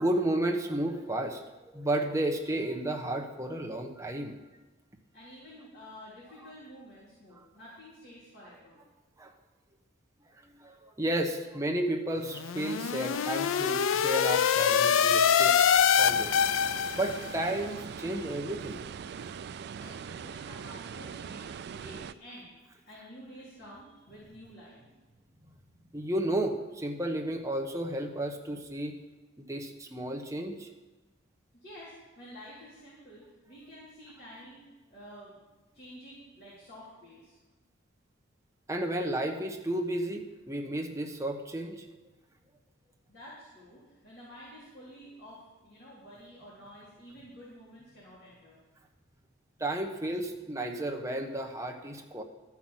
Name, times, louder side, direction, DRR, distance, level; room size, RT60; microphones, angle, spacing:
voice 1, 0.0-1.4 1.7-4.3 9.2-9.3 10.6-15.6 16.0-16.3 16.9-18.8 19.2-19.3 25.9-29.0 29.4-30.7 38.7-41.8 49.6-52.2, right 1 dB, 15° right, 3 dB, 1.0 m, -32 dB
voice 2, 5.1-8.8 19.7-22.5 22.9-24.8 31.5-34.6 34.9-35.3 35.7-37.4 43.1-48.6, equal, 50° left, -8 dB, 3.6 m, -50 dB
sound 1, 12.3-17.3, left 8 dB, 75° left, 0.4 m, -25 dB
sound 2, 16.0-22.1, right 7 dB, 55° right, 0.3 m, -41 dB
13.0 x 5.9 x 7.5 m, 1.2 s
head